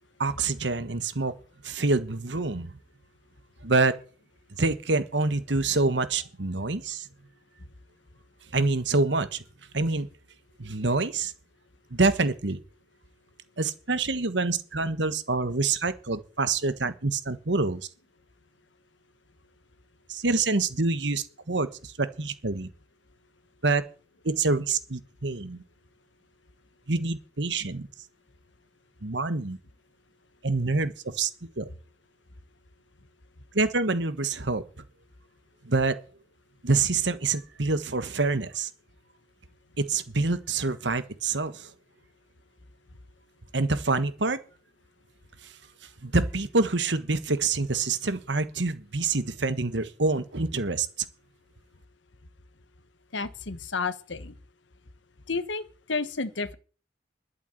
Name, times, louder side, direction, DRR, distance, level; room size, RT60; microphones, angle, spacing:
voice 1, 0.2-1.3 1.6-2.7 3.6-4.0 4.5-7.1 8.5-9.4 9.7-10.1 10.6-11.3 11.9-12.6 13.6-17.8 20.1-22.7 23.6-23.8 24.2-25.6 26.9-27.9 29.0-29.6 30.4-31.3 31.6-31.7 33.5-34.6 35.6-36.0 36.6-38.7 39.8-41.7 43.5-44.4 45.4-45.5 46.0-50.9, right 3 dB, 75° right, 1.4 m, -26 dB
voice 2, 53.1-54.3 55.3-55.6 55.9-56.5, left 4 dB, 85° left, 1.3 m, -31 dB
12.0 x 8.3 x 7.9 m
head